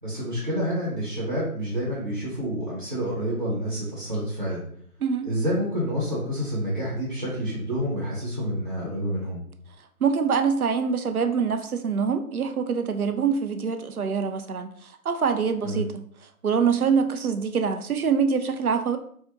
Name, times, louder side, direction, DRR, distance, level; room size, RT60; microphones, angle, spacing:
voice 1, 0.0-4.6 5.2-9.4 15.6-15.8, equal, 30° right, -7 dB, 1.0 m, -28 dB
voice 2, 10.0-15.9 16.4-19.0, right 6 dB, 70° right, 8 dB, 0.6 m, -24 dB
4.0 x 2.3 x 2.9 m, 0.62 s
figure-of-eight pair, 175°, 45 cm